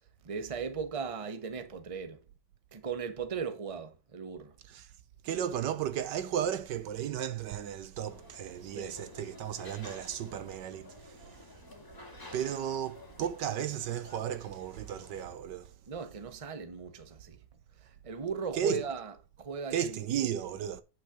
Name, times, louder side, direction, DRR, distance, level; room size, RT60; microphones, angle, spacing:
voice 1, 0.2-2.2 2.7-4.5 8.6-9.0 10.3-10.4 15.9-17.4 18.0-20.0, right 5 dB, 25° right, 0.9 m, -37 dB
voice 2, 5.2-10.9 12.3-15.7 18.5-18.8 19.7-20.8, right 9 dB, 75° right, 1.4 m, -34 dB
sound 1, 8.1-15.4, left 2 dB, 10° left, 1.6 m, -51 dB
8.4 x 5.9 x 4.9 m
omnidirectional pair, 1.9 m